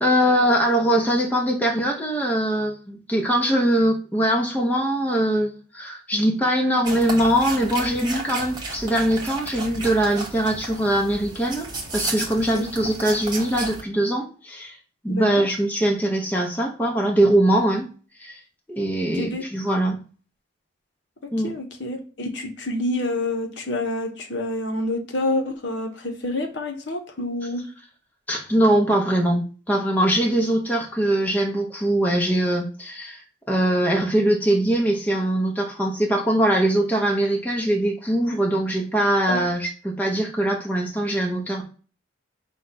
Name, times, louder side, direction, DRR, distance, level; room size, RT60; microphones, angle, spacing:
voice 1, 0.0-14.8 15.0-17.9 18.2-18.4 18.7-20.0 21.3-21.5 28.3-41.6, right 1 dB, 10° left, 0 dB, 0.6 m, -22 dB
sound 1, 6.8-13.8, right 2 dB, 20° right, 0.8 m, -33 dB
voice 2, 15.1-15.4 19.1-19.4 21.2-27.6 39.3-39.4, left 1 dB, 60° left, 4 dB, 0.7 m, -28 dB
4.8 x 2.2 x 3.9 m, 0.38 s
head